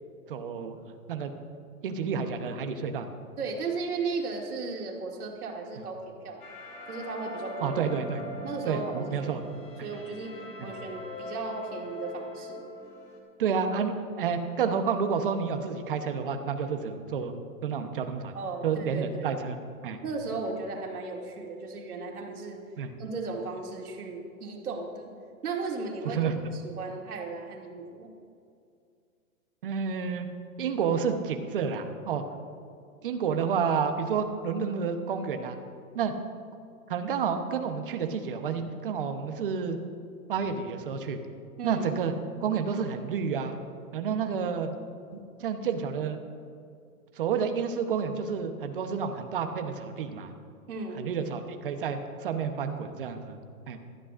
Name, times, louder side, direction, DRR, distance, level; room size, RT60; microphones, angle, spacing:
voice 1, 0.3-0.8 1.1-1.3 1.8-3.1 7.6-8.2 8.7-9.4 9.8-9.9 10.6-10.7 13.4-17.3 17.6-18.3 18.6-19.6 19.8-20.0 22.8-22.9 26.0-26.5 29.6-30.3 30.6-32.2 33.0-35.6 35.9-36.1 36.9-39.8 40.3-41.2 41.6-42.1 42.4-43.6 43.9-44.7 45.4-46.2 47.2-50.3 51.0-53.4 53.7-53.8, right 6 dB, 40° right, 6 dB, 0.9 m, -30 dB
voice 2, 3.4-6.5 6.9-7.8 8.4-10.3 10.6-12.7 18.3-19.4 20.0-22.6 23.0-25.1 25.4-26.2 26.5-28.1 41.6-41.8 50.7-51.0, right 3 dB, 90° right, 0 dB, 2.4 m, -36 dB
sound 1, 6.4-13.2, left 1 dB, 15° left, 1.0 m, -41 dB
19.5 x 12.5 x 2.5 m, 2.3 s
hypercardioid pair, 175°, 43 cm